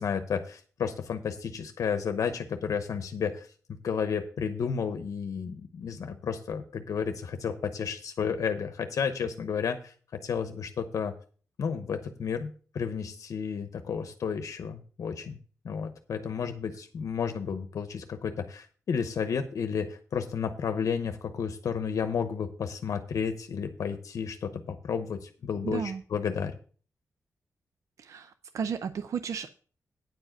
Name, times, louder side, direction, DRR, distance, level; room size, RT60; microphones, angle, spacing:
voice 1, 0.0-9.9 10.2-11.2 11.6-15.4 15.6-26.5, left 6 dB, 70° left, 8 dB, 0.8 m, -32 dB
voice 2, 25.6-26.0 28.0-29.5, right 7 dB, 65° right, 11 dB, 0.5 m, -34 dB
9.5 x 4.8 x 7.7 m, 0.41 s
wide cardioid pair, 150°, 6 cm